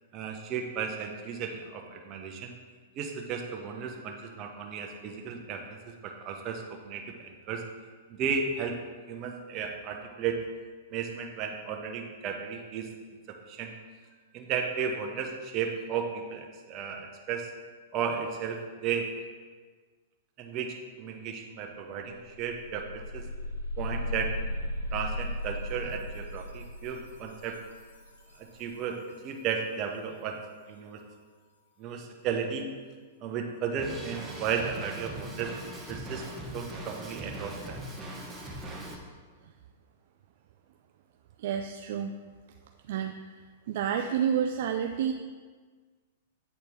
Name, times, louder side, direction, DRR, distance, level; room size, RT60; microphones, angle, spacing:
voice 1, 0.1-2.5 3.0-5.8 6.0-7.6 8.1-8.8 9.1-10.4 10.9-12.9 13.5-13.8 14.3-17.5 17.9-19.1 20.4-23.3 23.8-24.3 24.9-27.6 28.4-29.0 29.2-30.4 30.7-31.0 31.8-32.7 33.2-35.5 35.9-36.2 36.5-37.8, right 6 dB, 35° right, 2 dB, 0.9 m, -34 dB
sound 1, 21.7-21.8 22.1-28.9, left 1 dB, 80° left, 1.1 m, -37 dB
Drum kit, 33.8-39.0, right 1 dB, 15° right, 1.1 m, -40 dB
voice 2, 41.4-42.1 42.9-43.4 43.7-45.1, right 8 dB, 60° right, 4 dB, 0.3 m, -29 dB
8.1 x 4.3 x 3.5 m, 1.5 s
hypercardioid pair, 110°, 0 cm